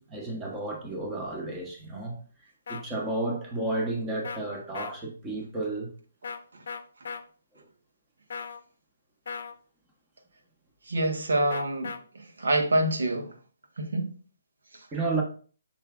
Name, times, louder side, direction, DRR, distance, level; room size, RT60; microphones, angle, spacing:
voice 1, 0.0-2.2 2.7-5.9 7.5-7.6 14.9-15.2, right 2 dB, 10° right, 1.1 m, -32 dB
sound 1, 2.7-2.8 4.2-4.4 4.7-4.9 6.2-6.4 6.7-7.2 8.3-8.6 9.3-9.5 11.5-12.0, left 5 dB, 60° left, 0.7 m, -36 dB
voice 2, 10.9-13.3 13.8-14.1 14.7-14.9, right 1 dB, 80° right, 1.5 m, -27 dB
7.0 x 5.8 x 2.4 m
hypercardioid pair, 165°, 0 cm